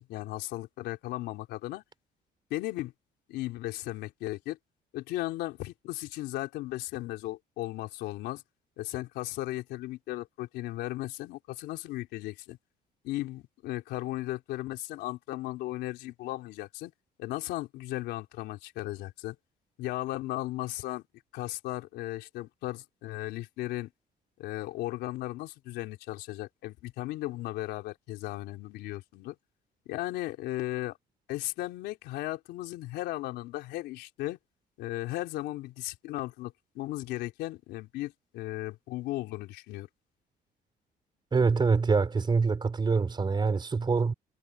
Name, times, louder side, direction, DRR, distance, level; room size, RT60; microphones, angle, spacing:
voice 1, 0.0-1.8 2.5-2.9 3.3-4.6 4.9-8.4 8.8-12.6 13.0-16.9 17.2-19.4 19.8-21.0 21.3-23.9 24.4-29.4 29.9-31.0 31.3-34.4 34.8-39.9, left 16 dB, 85° left, 3.7 m, -36 dB
voice 2, 41.3-44.1, right 4 dB, 25° right, 4.7 m, -25 dB
cardioid pair, 110°, 17 cm